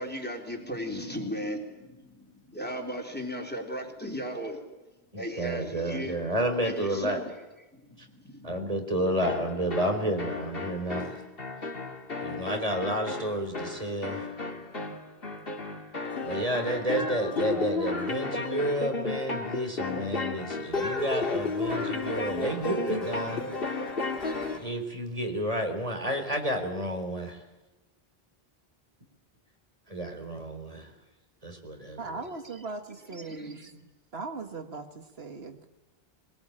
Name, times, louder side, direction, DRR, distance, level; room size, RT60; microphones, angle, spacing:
voice 1, 0.0-4.6 5.2-6.2 6.6-7.4 7.7-8.5 33.3-33.5, equal, 10° left, 2 dB, 3.7 m, -36 dB
voice 2, 5.1-7.2 8.4-11.2 12.2-14.3 16.2-23.4 24.5-27.4 29.9-30.9 31.4-32.2 33.6-33.8, right 1 dB, 35° right, 4 dB, 4.3 m, -31 dB
sound 1, 9.2-24.7, left 3 dB, 65° left, 2.5 m, -33 dB
voice 3, 32.0-33.7 34.1-35.7, right 3 dB, 80° right, 6 dB, 2.0 m, -39 dB
23.0 x 21.5 x 8.9 m, 1.0 s
omnidirectional pair, 1.0 m